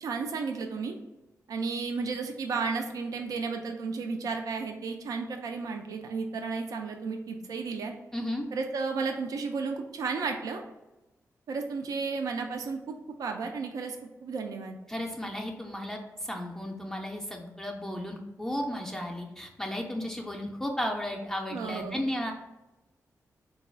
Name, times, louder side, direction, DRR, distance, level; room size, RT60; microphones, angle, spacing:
voice 1, 0.0-1.0 1.5-8.0 8.5-10.6 11.5-12.9 13.2-14.0 14.2-14.8 21.5-22.0, right 4 dB, 85° right, 3 dB, 0.4 m, -33 dB
voice 2, 8.1-8.5 14.9-22.3, left 1 dB, 10° left, 0 dB, 0.4 m, -34 dB
3.9 x 2.3 x 4.3 m, 1.0 s
wide cardioid pair, 155°, 6 cm